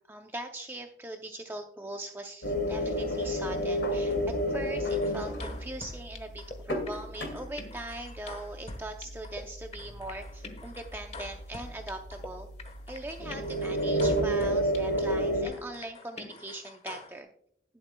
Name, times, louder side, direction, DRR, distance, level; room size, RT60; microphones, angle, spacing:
voice 1, 0.0-12.5 12.9-17.3, right 1 dB, 10° right, 4 dB, 0.5 m, -41 dB
sound 1, 2.4-15.4, equal, 75° left, 2.3 m, -32 dB
sound 2, 4.8-6.6 6.9-9.4 9.7-12.3 12.6-15.1 15.5-17.2, left 3 dB, 35° left, 1.1 m, -46 dB
19.5 x 7.5 x 2.2 m, 0.69 s
head